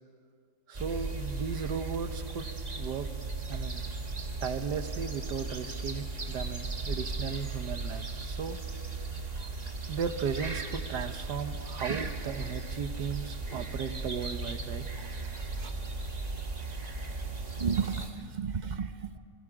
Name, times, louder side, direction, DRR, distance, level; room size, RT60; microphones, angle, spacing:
sound 1, 0.7-18.1, right 3 dB, 25° right, 1.3 m, -36 dB
voice 1, 0.7-2.5 2.8-3.1 3.5-3.8 4.4-8.6 9.9-14.8, right 6 dB, 80° right, 8 dB, 1.7 m, -36 dB
voice 2, 17.6-19.2, right 6 dB, 40° right, 9 dB, 0.6 m, -33 dB
29.0 x 21.5 x 5.0 m, 2.3 s
omnidirectional pair, 1.8 m